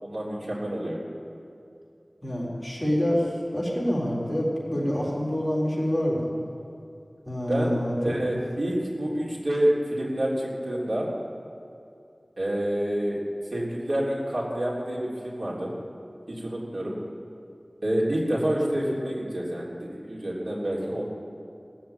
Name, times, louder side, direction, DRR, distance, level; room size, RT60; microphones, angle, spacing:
voice 1, 0.0-1.0 7.5-7.7 8.0-11.1 12.4-13.2 13.5-15.7 16.3-17.0 17.8-21.0, right 1 dB, 70° right, -5 dB, 3.4 m, -28 dB
voice 2, 2.2-3.2 3.5-6.3 7.3-8.2, equal, 15° left, -5 dB, 4.0 m, -26 dB
18.0 x 7.5 x 8.6 m, 2.6 s
wide cardioid pair, 50°, 0 cm